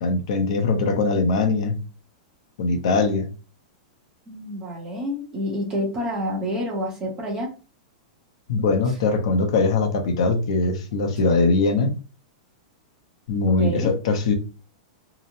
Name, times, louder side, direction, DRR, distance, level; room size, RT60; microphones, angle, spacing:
voice 1, 0.0-1.8 2.6-3.3 8.5-11.9 13.3-14.3, left 3 dB, 50° left, 0.6 m, -21 dB
voice 2, 4.3-7.5 13.5-13.9, equal, 15° right, 0.7 m, -28 dB
2.8 x 2.0 x 2.6 m
supercardioid pair, 175°, 4 cm